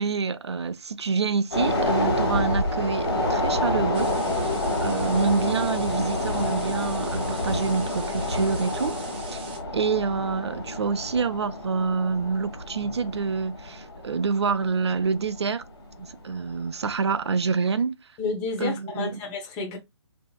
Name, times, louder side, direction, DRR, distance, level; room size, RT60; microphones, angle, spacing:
voice 1, 0.0-4.6 4.8-9.4 9.7-15.6 16.2-18.0 18.6-19.2, right 5 dB, 65° right, 0.4 m, -27 dB
sound 1, 1.5-16.1 16.4-16.6, left 1 dB, 55° left, 1.6 m, -28 dB
sound 2, 3.9-9.6, right 4 dB, 20° right, 0.6 m, -42 dB
voice 2, 18.2-19.8, left 4 dB, 15° left, 0.7 m, -30 dB
2.8 x 2.8 x 2.2 m
figure-of-eight pair, 140°, 15 cm